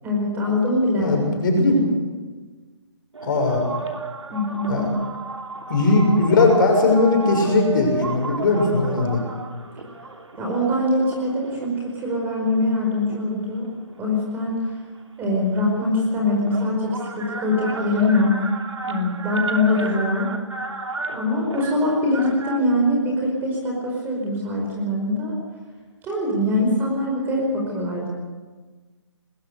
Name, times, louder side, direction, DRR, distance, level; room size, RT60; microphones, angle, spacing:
voice 1, 0.0-1.2 4.3-4.8 10.4-13.7 14.0-14.7 15.2-18.3 18.8-20.3 21.1-25.4 26.0-28.1, left 1 dB, 15° right, -1 dB, 5.0 m, -23 dB
voice 2, 1.0-1.8 3.2-3.7 4.7-4.9 5.7-9.2, left 2 dB, 45° left, 2 dB, 6.5 m, -19 dB
sound 1, 3.1-12.0 12.6-14.3 15.5-15.6 15.8-22.6, right 3 dB, 85° right, 3.2 m, -33 dB
21.0 x 16.5 x 8.0 m, 1.3 s
figure-of-eight pair, 150°, 15 cm